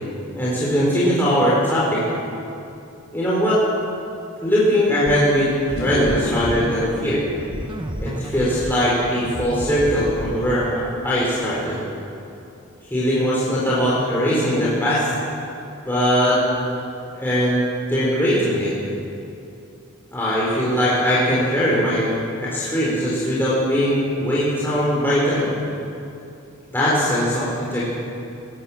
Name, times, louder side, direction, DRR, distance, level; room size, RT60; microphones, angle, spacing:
voice 1, 0.4-2.0 3.1-3.6 4.4-5.5 5.8-7.2 8.0-11.8 12.9-15.1 15.8-16.4 17.2-18.7 20.1-25.5 26.7-27.8, equal, 10° left, -8 dB, 4.3 m, -20 dB
sound 1, 5.1-10.9, right 1 dB, 20° right, 1.0 m, -32 dB
sound 2, 5.8-14.1 14.4-14.8 18.4-18.5 20.1-20.2 20.5-20.7 20.9-21.5, left 1 dB, 60° left, 4.4 m, -36 dB
20.0 x 18.0 x 7.3 m, 2.7 s
head